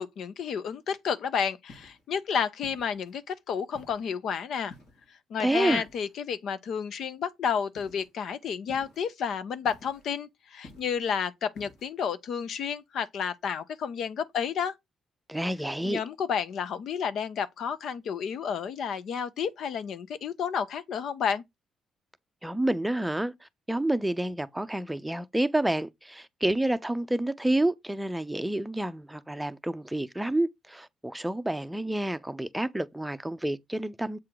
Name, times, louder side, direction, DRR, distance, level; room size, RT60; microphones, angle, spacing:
voice 1, 0.0-4.7 5.3-14.7 15.8-21.4, left 7 dB, 70° left, 0.6 m, -31 dB
sound 1, 1.7-2.1 2.6-3.2 3.7-4.1 4.7-5.1 5.7-6.2 7.7-8.1 8.7-9.1 9.6-10.1 10.6-11.1 11.5-11.9, left 2 dB, 90° left, 3.4 m, -51 dB
voice 2, 5.4-5.8 15.3-16.0 22.4-34.2, right 1 dB, 5° right, 0.5 m, -29 dB
7.5 x 3.8 x 4.7 m
cardioid pair, 90°, 0 cm